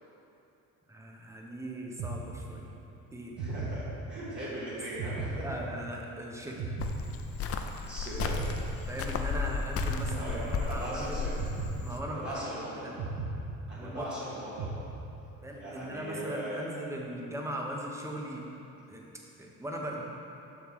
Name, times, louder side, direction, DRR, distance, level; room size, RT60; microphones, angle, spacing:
voice 1, 0.9-2.7 3.1-3.4 5.4-6.7 8.9-10.4 10.7-11.3 11.8-12.5 12.8-13.2 13.8-14.0 14.3-14.4 15.4-18.5 18.9-19.1 19.4-20.0, right 1 dB, 10° right, -1 dB, 0.9 m, -39 dB
sound 1, 2.0-2.8 3.4-4.4 5.0-6.1 6.6-7.8 8.2-9.4 9.8-10.8 11.4-12.5 13.0-14.2 14.6-15.4, right 2 dB, 75° right, 0.9 m, -37 dB
voice 2, 3.4-5.5 7.3-7.5 7.8-8.4 10.1-11.3 12.1-12.9 13.7-14.7 15.6-16.7, right 1 dB, 30° right, -10 dB, 1.5 m, -39 dB
Cricket, 6.8-12.0, left 5 dB, 45° left, 0.5 m, -34 dB
7.2 x 5.9 x 3.1 m, 2.8 s
cardioid pair, 90°, 34 cm